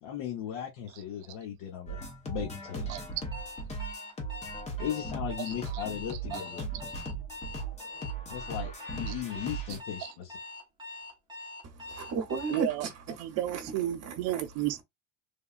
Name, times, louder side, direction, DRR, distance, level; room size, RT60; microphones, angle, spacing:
voice 1, 0.0-2.9 4.8-6.6 8.3-10.4, left 10 dB, 60° left, 0.9 m, -37 dB
sound 1, 1.9-9.8, right 3 dB, 15° left, 0.3 m, -38 dB
Alarm, 3.3-12.7, left 3 dB, 10° right, 0.8 m, -43 dB
voice 2, 5.4-5.8 6.3-6.4 9.1-9.2 10.0-10.1 12.5-12.9 13.2-14.8, right 13 dB, 70° right, 0.6 m, -33 dB
voice 3, 11.6-13.7 14.0-14.4, right 5 dB, 30° right, 0.9 m, -36 dB
3.4 x 2.2 x 2.4 m
cardioid pair, 170°, 49 cm